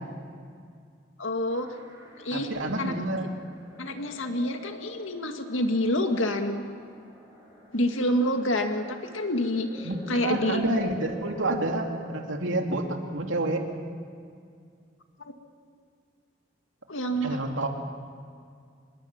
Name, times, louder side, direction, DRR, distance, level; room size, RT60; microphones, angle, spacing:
voice 1, 1.2-1.7 2.2-2.5 2.8-2.9 3.8-6.6 7.7-10.6 15.2-15.3 16.9-17.4, left 1 dB, 85° left, 5 dB, 2.0 m, -27 dB
sound 1, 1.5-12.4, equal, 15° right, 7.5 m, -48 dB
voice 2, 2.3-3.3 9.8-13.6 17.2-17.7, right 2 dB, 80° right, 3 dB, 2.7 m, -29 dB
25.5 x 22.0 x 7.3 m, 2.2 s
head